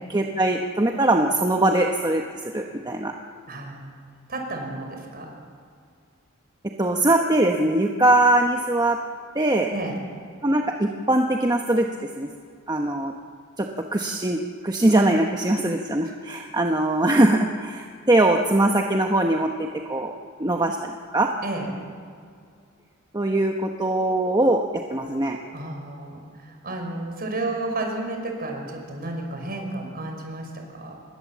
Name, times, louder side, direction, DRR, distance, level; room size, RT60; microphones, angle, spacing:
voice 1, 0.1-2.2 2.5-3.1 6.8-9.0 9.3-9.7 10.4-11.9 12.2-12.3 12.7-13.1 13.6-19.5 19.9-20.1 20.4-21.3 23.1-24.6 24.9-25.4, right 1 dB, 20° right, 2 dB, 1.1 m, -21 dB
voice 2, 3.5-3.9 4.3-5.3 9.7-10.0 21.4-21.7 25.5-30.9, right 2 dB, 45° right, 2 dB, 5.6 m, -32 dB
27.0 x 21.0 x 7.4 m, 2.2 s
head